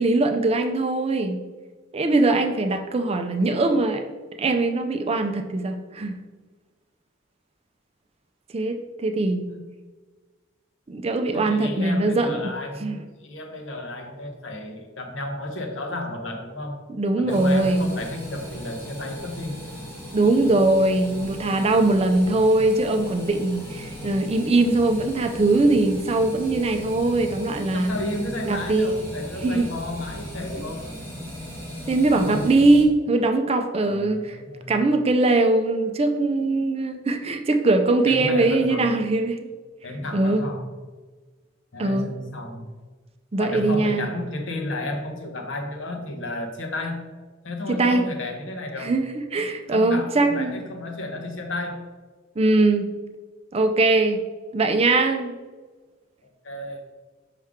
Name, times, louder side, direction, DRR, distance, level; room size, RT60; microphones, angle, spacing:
voice 1, 0.0-1.4 1.9-4.0 4.4-6.2 8.5-9.5 10.9-12.5 12.8-13.0 17.0-17.9 20.1-27.9 28.5-29.1 29.4-29.7 31.9-34.4 34.7-39.5 40.1-40.5 41.8-42.1 43.3-44.1 47.7-48.1 48.8-50.6 52.4-52.9 53.5-54.2 54.5-55.3, right 2 dB, 30° right, 6 dB, 0.4 m, -21 dB
voice 2, 11.3-16.9 17.2-19.6 27.7-30.9 32.1-32.5 33.8-34.8 38.1-38.9 39.8-40.7 41.7-42.7 43.4-47.0 47.4-49.0 49.7-51.8 56.4-56.8, left 1 dB, 65° left, 4 dB, 0.9 m, -32 dB
sound 1, 17.3-32.8, equal, 15° left, 1.3 m, -37 dB
5.4 x 5.0 x 3.6 m, 1.3 s
head